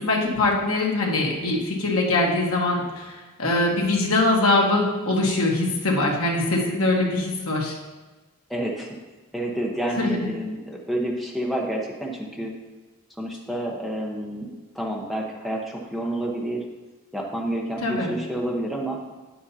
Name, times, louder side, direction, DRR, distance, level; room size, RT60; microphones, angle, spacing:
voice 1, 0.0-7.8 10.0-10.3 17.8-18.1, left 2 dB, 70° left, -2 dB, 1.4 m, -23 dB
voice 2, 8.5-8.9 9.3-12.5 13.2-16.6 17.1-19.0, right 1 dB, ahead, -2 dB, 1.0 m, -29 dB
9.2 x 7.5 x 2.8 m, 1.2 s
head